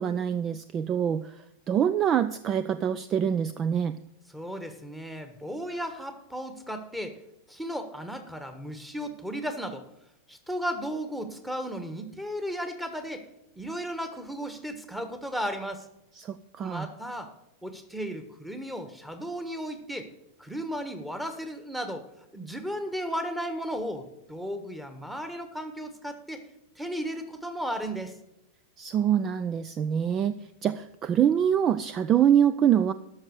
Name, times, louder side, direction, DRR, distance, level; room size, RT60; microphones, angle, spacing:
voice 1, 0.0-1.3 1.7-4.0 16.2-16.9 28.8-30.3 30.6-32.9, right 9 dB, 30° right, 14 dB, 0.4 m, -25 dB
voice 2, 4.3-7.2 7.5-9.8 10.3-13.2 13.5-15.9 16.6-17.3 17.6-20.1 20.4-22.0 22.3-26.4 26.8-28.1, equal, 5° right, 7 dB, 1.4 m, -35 dB
13.0 x 6.3 x 6.5 m, 0.86 s
figure-of-eight pair, 90°, 0 cm